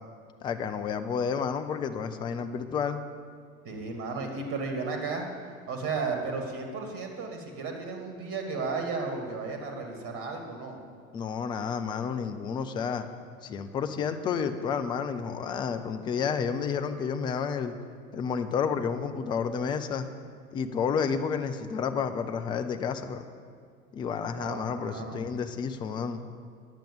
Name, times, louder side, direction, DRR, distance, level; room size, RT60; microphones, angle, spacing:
voice 1, 0.4-3.0 11.1-13.1 13.4-17.7 18.1-20.1 20.5-23.3 23.9-26.3, left 6 dB, 10° left, 8 dB, 0.3 m, -30 dB
voice 2, 3.6-5.3 5.7-10.8 24.4-25.3, right 4 dB, 30° right, 3 dB, 2.2 m, -34 dB
10.5 x 7.9 x 7.1 m, 2.1 s
figure-of-eight pair, 85°, 42 cm